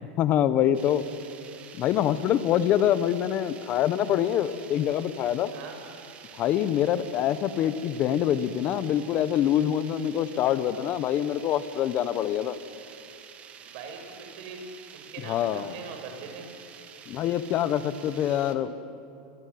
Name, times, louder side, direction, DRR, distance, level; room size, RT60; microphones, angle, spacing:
voice 1, 0.2-1.0 1.8-5.5 6.4-12.6 15.3-15.7 17.1-18.8, left 10 dB, 35° left, 14 dB, 1.1 m, -25 dB
sound 1, 0.7-18.6, right 8 dB, 25° right, 1.8 m, -48 dB
voice 2, 13.6-14.6 14.9-16.5, right 5 dB, 55° right, 4 dB, 5.7 m, -42 dB
24.5 x 18.5 x 9.5 m, 2.7 s
supercardioid pair, 150°, 5 cm